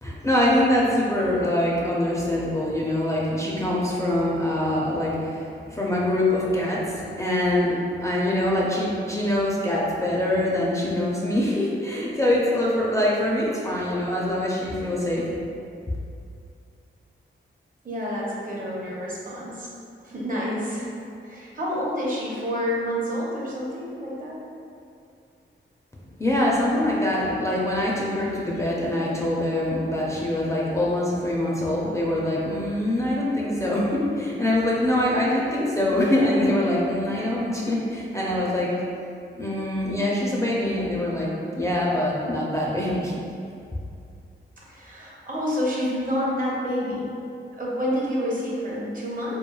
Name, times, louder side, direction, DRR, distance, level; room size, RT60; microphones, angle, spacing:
voice 1, 0.0-15.4 15.9-16.0 26.2-38.8 39.3-41.3 41.5-43.1, left 1 dB, 15° left, -5 dB, 0.4 m, -24 dB
voice 2, 17.8-19.7 20.0-20.9 21.2-24.4 44.7-47.1 47.6-49.4, equal, 40° right, -5 dB, 0.7 m, -28 dB
3.0 x 2.2 x 2.2 m, 2.5 s
cardioid pair, 65°, 21 cm